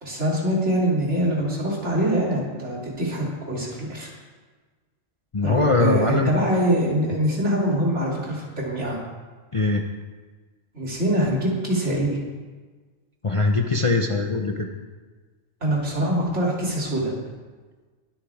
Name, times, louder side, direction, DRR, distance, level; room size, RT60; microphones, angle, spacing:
voice 1, 0.0-4.1 5.4-9.0 10.7-12.2 15.6-17.1, right 1 dB, 60° right, -4 dB, 3.2 m, -24 dB
voice 2, 5.3-6.4 9.5-9.9 13.2-14.7, left 3 dB, 30° left, 3 dB, 0.6 m, -21 dB
22.0 x 9.0 x 3.5 m, 1.4 s
omnidirectional pair, 1.4 m